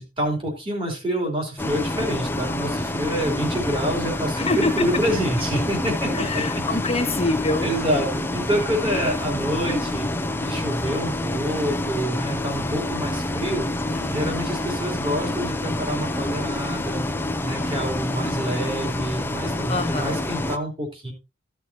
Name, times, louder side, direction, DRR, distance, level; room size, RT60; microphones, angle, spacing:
voice 1, 0.0-6.4 7.6-10.1 10.4-13.7 14.1-17.0 17.4-21.1, equal, 25° right, 1 dB, 3.1 m, -27 dB
Bus, 1.6-20.6, left 1 dB, 10° left, 0.5 m, -27 dB
voice 2, 4.4-4.7 6.1-7.7 13.9-14.3 19.7-20.1, left 3 dB, 30° left, 6 dB, 1.4 m, -25 dB
14.5 x 6.3 x 2.8 m, 0.26 s
head